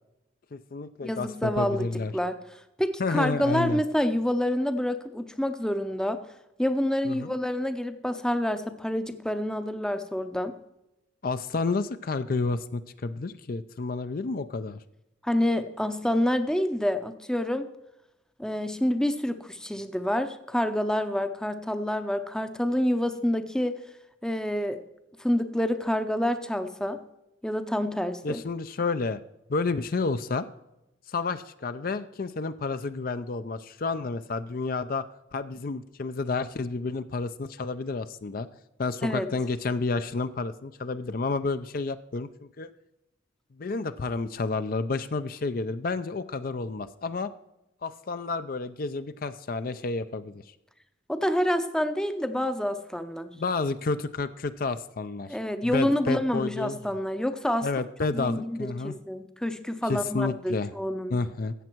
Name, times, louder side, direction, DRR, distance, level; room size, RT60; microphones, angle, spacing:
voice 1, 0.5-2.1 3.0-3.8 7.0-7.4 11.2-14.8 28.2-29.2 29.5-30.5 31.1-35.1 35.3-38.5 38.8-42.3 42.6-42.7 43.6-47.3 47.8-50.4 53.3-56.8 57.6-58.9 59.9-60.7 61.1-61.5, left 3 dB, 50° left, 11 dB, 0.5 m, -30 dB
voice 2, 1.0-2.3 2.8-6.2 6.6-10.6 15.2-17.7 18.4-23.8 24.2-24.8 25.2-27.0 27.4-28.4 39.0-39.3 51.1-53.3 55.3-57.7 58.1-61.2, left 1 dB, 5° left, 10 dB, 0.6 m, -27 dB
14.0 x 8.4 x 4.5 m, 0.91 s
head